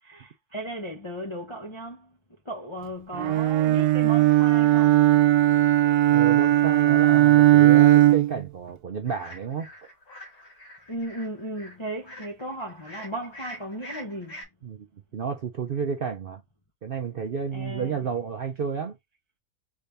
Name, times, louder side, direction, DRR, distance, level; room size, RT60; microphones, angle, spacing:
voice 1, 0.0-2.2 2.4-5.1 10.9-14.5 17.5-18.0, right 1 dB, 30° left, 0.5 m, -36 dB
Bowed string instrument, 3.2-8.5, right 15 dB, 85° right, 1.1 m, -18 dB
voice 2, 6.1-9.7 14.6-14.9 15.1-16.4 16.8-18.9, right 6 dB, 55° right, 0.6 m, -31 dB
sound 1, 9.0-14.4, equal, 70° left, 2.5 m, -45 dB
4.8 x 2.6 x 3.5 m
omnidirectional pair, 1.6 m